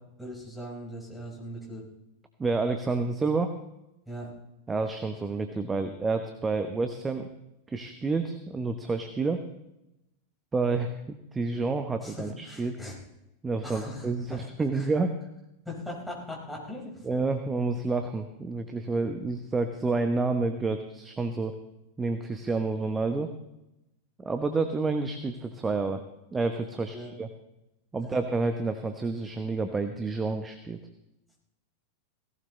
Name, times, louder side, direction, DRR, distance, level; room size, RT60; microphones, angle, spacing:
voice 1, 0.2-1.9 4.0-4.3 12.0-13.0 13.6-14.9 15.6-17.1 26.9-27.1 28.0-28.2, left 1 dB, ahead, -4 dB, 5.3 m, -40 dB
voice 2, 2.4-3.5 4.7-7.3 7.7-9.4 10.5-12.8 13.4-15.2 17.0-21.5 22.0-23.3 24.2-26.0 26.3-27.3 27.9-30.8, right 3 dB, 15° right, 7 dB, 1.0 m, -29 dB
17.5 x 16.5 x 3.3 m, 0.88 s
figure-of-eight pair, 90°, 0 cm